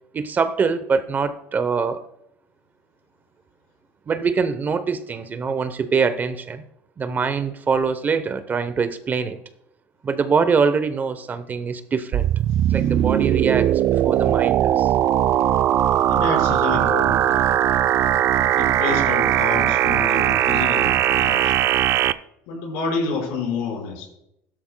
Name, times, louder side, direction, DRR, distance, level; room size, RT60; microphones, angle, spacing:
voice 1, 0.1-2.0 4.1-6.6 7.0-9.4 10.0-12.3 12.7-14.9, right 5 dB, 30° right, 11 dB, 0.8 m, -23 dB
sound 1, 12.1-22.1, right 11 dB, 50° right, 0.4 m, -19 dB
voice 2, 16.1-17.5 18.6-21.6 22.5-24.1, left 4 dB, 85° left, 0 dB, 5.1 m, -28 dB
16.0 x 12.5 x 2.2 m, 0.81 s
cardioid pair, 125°, 6 cm